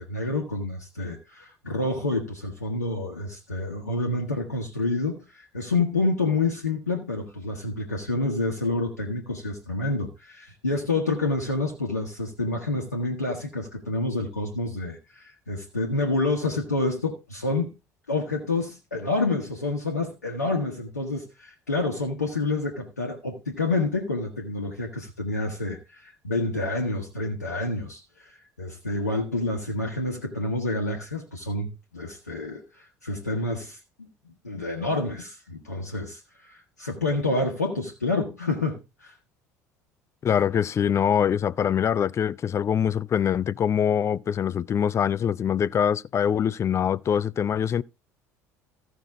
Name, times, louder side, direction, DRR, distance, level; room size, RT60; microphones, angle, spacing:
voice 1, 0.0-17.8 18.1-34.1 34.4-39.1, left 2 dB, 85° left, 1.3 m, -28 dB
voice 2, 40.2-47.8, left 8 dB, 35° left, 0.5 m, -24 dB
15.0 x 6.1 x 3.6 m
figure-of-eight pair, 60°, 9 cm